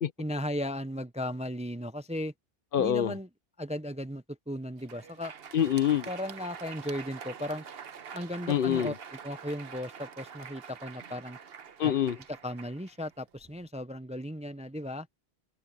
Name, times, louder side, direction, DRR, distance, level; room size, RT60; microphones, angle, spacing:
voice 1, 0.2-2.3 2.8-3.3 3.6-5.3 6.1-7.6 8.1-11.4 11.8-11.9 12.4-15.1, left 1 dB, 10° right, 0.5 m, -36 dB
voice 2, 2.7-3.1 5.5-6.1 8.5-8.9 11.8-12.2, left 9 dB, 65° left, 0.8 m, -25 dB
Crowd, 4.7-13.6, right 7 dB, 70° right, 1.2 m, -46 dB
omnidirectional pair, 1.0 m